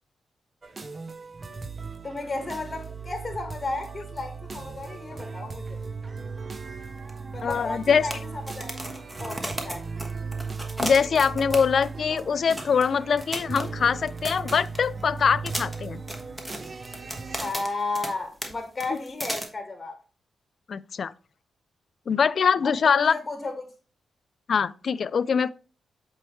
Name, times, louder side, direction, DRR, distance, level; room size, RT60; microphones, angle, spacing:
sound 1, 0.6-17.5, right 4 dB, 40° right, 0.6 m, -37 dB
voice 1, 2.0-5.8 7.3-8.8 9.2-9.8 17.4-20.0 22.6-23.7, left 3 dB, 30° left, 1.2 m, -33 dB
sound 2, 7.1-7.2 7.4-7.5 8.1-11.9 12.2-12.3 12.6-12.8 13.2-15.0 15.5-18.1 18.4-18.5 18.8-19.4, right 1 dB, 15° right, 1.3 m, -34 dB
voice 2, 7.4-8.1 10.8-16.0 20.7-21.1 22.1-23.1 24.5-25.5, left 6 dB, 60° left, 0.3 m, -23 dB
7.6 x 4.4 x 3.1 m
cardioid pair, 70°, 0 cm